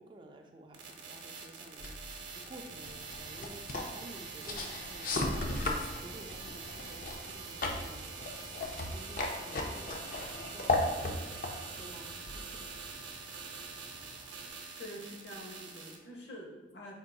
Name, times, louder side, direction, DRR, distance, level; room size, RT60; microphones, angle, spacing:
voice 1, 0.0-3.6 3.9-8.2 8.6-11.3 11.8-12.6, right 1 dB, 25° right, 3 dB, 0.3 m, -52 dB
sound 1, 0.7-16.0, right 5 dB, 80° right, 0.5 m, -45 dB
sound 2, 1.8-12.9, left 2 dB, 50° left, 0.4 m, -37 dB
sound 3, 5.5-14.5, equal, 10° left, 1.1 m, -56 dB
voice 2, 14.8-16.9, equal, 75° left, -1 dB, 0.8 m, -46 dB
3.9 x 3.6 x 2.3 m, 1.2 s
head